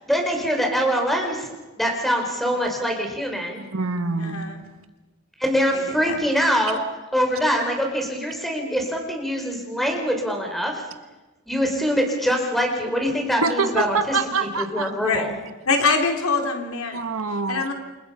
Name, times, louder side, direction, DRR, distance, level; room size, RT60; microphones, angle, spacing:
voice 1, 0.1-1.5 1.8-3.6 5.4-6.8 7.1-10.8 11.5-14.2 14.6-15.3, equal, ahead, 2 dB, 4.7 m, -23 dB
voice 2, 3.5-4.4 13.4-14.9 16.9-17.7, right 4 dB, 70° right, 9 dB, 1.5 m, -25 dB
voice 3, 4.2-4.6 5.7-6.2 15.0-15.3 15.7-17.1 17.5-17.7, left 4 dB, 80° left, 3 dB, 3.7 m, -24 dB
29.0 x 26.0 x 5.8 m, 1.2 s
head